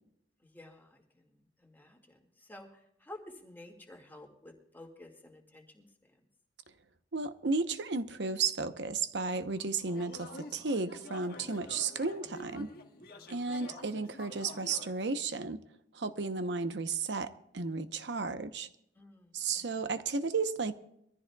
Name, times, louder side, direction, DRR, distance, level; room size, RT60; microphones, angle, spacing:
voice 1, 0.4-6.2 13.1-13.6 18.9-19.9, left 1 dB, 10° left, 2.1 m, -53 dB
voice 2, 7.1-12.7 13.3-15.6 15.9-18.7 19.3-20.7, right 4 dB, 85° right, 0.9 m, -33 dB
sound 1, 9.2-14.9, left 2 dB, 60° left, 1.6 m, -49 dB
23.0 x 14.5 x 2.3 m
head